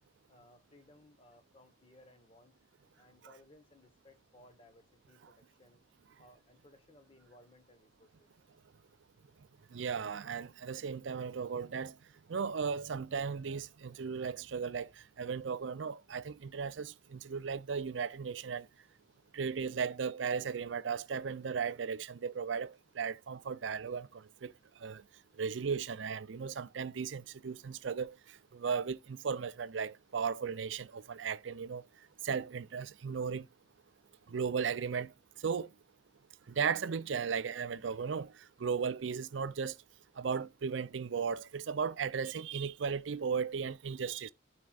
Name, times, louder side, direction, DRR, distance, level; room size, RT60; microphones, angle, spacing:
voice 1, 0.3-2.5 3.0-5.8 6.2-8.3, left 1 dB, 30° left, 1.2 m, -61 dB
voice 2, 9.7-11.9 12.3-14.9 15.2-18.7 19.3-24.5 24.8-25.0 25.4-28.1 28.5-31.8 32.2-33.5 34.3-35.1 35.4-35.7 36.6-38.3 38.6-39.7 40.2-44.3, right 6 dB, 80° right, 0.5 m, -36 dB
12.5 x 4.4 x 2.4 m
head